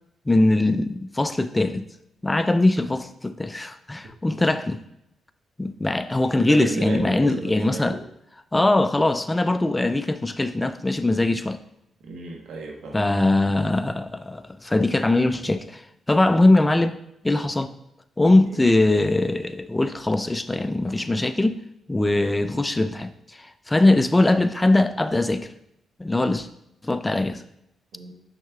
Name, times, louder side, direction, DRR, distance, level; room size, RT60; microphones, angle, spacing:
voice 1, 0.3-1.8 2.2-4.8 5.6-8.0 8.5-11.6 12.9-15.8 16.1-17.0 17.2-17.7 18.2-21.5 21.9-25.5 26.0-26.5 26.8-27.4, left 2 dB, 15° left, 11 dB, 0.4 m, -21 dB
voice 2, 6.3-8.0 12.0-13.0 18.4-18.6 27.9-28.1, right 3 dB, 80° right, 1 dB, 1.2 m, -34 dB
6.5 x 6.2 x 2.4 m, 0.79 s
cardioid pair, 70°, 0 cm